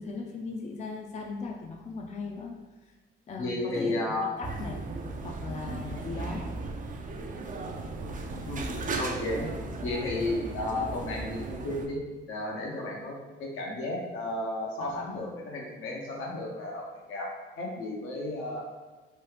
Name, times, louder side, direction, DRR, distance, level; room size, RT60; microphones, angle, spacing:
voice 1, 0.0-2.5 2.8-2.9 3.3-4.8 5.2-6.5 14.8-15.4, left 3 dB, 35° left, 1 dB, 0.4 m, -38 dB
voice 2, 3.4-4.2 5.6-5.9 8.5-9.5 9.8-17.3 17.6-18.6, left 2 dB, 75° left, -2 dB, 0.8 m, -33 dB
sound 1, 4.4-11.9, right 3 dB, 40° right, 0.4 m, -36 dB
3.1 x 2.3 x 3.2 m, 1.3 s
cardioid pair, 80°, 21 cm